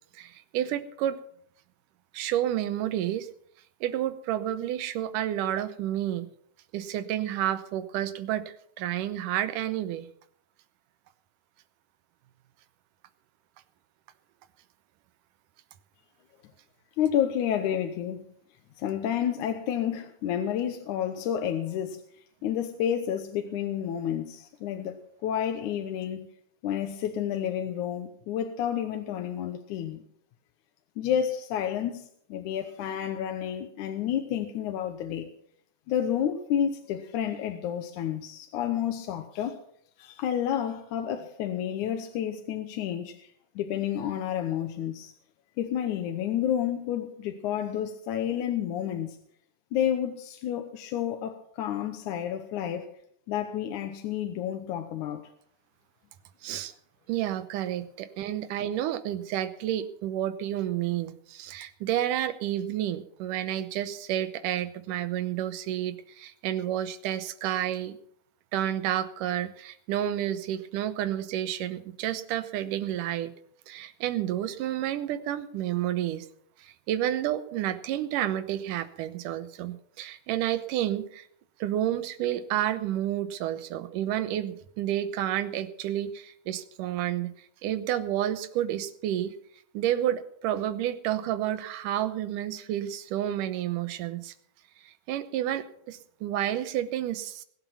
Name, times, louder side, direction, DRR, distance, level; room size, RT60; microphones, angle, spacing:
voice 1, 0.1-1.2 2.1-3.3 3.8-6.3 6.7-10.1 56.4-56.7 57.1-68.0 68.5-73.3 73.7-76.3 76.6-81.3 81.6-87.3 87.6-89.3 89.7-94.3 94.8-97.4, right 12 dB, 90° right, 2.5 m, -30 dB
voice 2, 17.0-18.3 18.8-22.0 22.4-26.3 26.6-30.0 31.0-35.3 35.9-39.6 40.0-45.1 45.6-49.2 49.7-52.9 53.3-55.3, left 9 dB, 75° left, 2.4 m, -30 dB
21.5 x 8.2 x 5.8 m
omnidirectional pair, 3.6 m